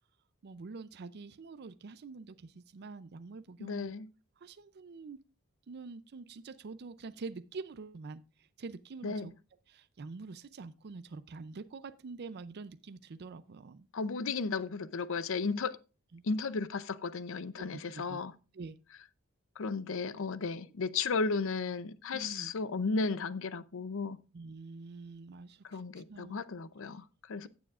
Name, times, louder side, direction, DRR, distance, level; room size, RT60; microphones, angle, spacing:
voice 1, 0.4-3.9 4.4-5.2 5.7-9.3 9.7-13.9 16.1-16.2 17.6-18.2 18.5-18.8 20.5-20.6 22.1-22.5 24.3-26.5, right 4 dB, 50° right, 0.5 m, -46 dB
voice 2, 3.6-4.1 9.0-9.3 13.9-15.8 16.2-18.3 19.6-24.2 25.6-27.5, left 4 dB, 65° left, 0.6 m, -34 dB
16.0 x 7.0 x 2.4 m
head